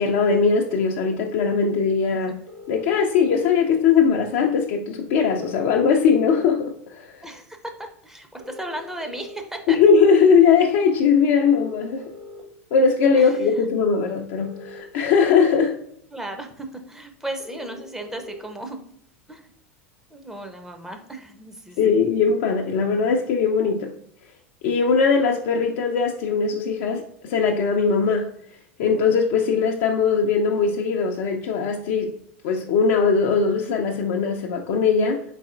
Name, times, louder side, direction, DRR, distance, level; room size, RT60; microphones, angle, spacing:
voice 1, 0.0-2.3 2.7-7.4 9.7-12.1 12.7-15.8 21.8-23.9 24.6-28.3 28.8-32.1 32.4-35.2, left 5 dB, 55° left, 0.5 m, -20 dB
sound 1, 2.5-3.4 5.4-6.4 8.4-9.4 11.4-12.4 14.4-15.4 17.4-18.4, left 2 dB, 35° right, 0.9 m, -42 dB
voice 2, 7.2-9.8 13.2-13.3 16.1-18.8 19.3-19.4 20.1-22.0, right 1 dB, 5° right, 0.6 m, -35 dB
4.0 x 4.0 x 2.4 m
figure-of-eight pair, 80°, 7 cm